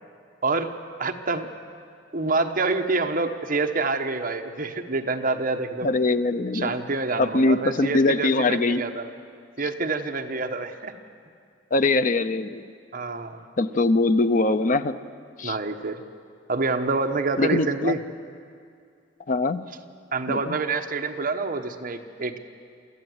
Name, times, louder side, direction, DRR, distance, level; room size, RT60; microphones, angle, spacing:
voice 1, 0.4-0.7 1.0-1.5 2.1-5.9 6.5-9.1 9.6-10.9 12.9-13.4 15.4-16.0 16.5-18.0 20.1-22.4, right 3 dB, 50° right, 4 dB, 1.2 m, -27 dB
voice 2, 5.8-6.7 7.2-8.8 11.7-12.6 13.6-15.0 15.4-15.6 17.4-17.9 19.3-19.6 20.3-20.6, left 2 dB, 45° left, 11 dB, 0.6 m, -22 dB
23.5 x 14.5 x 8.0 m, 2.3 s
head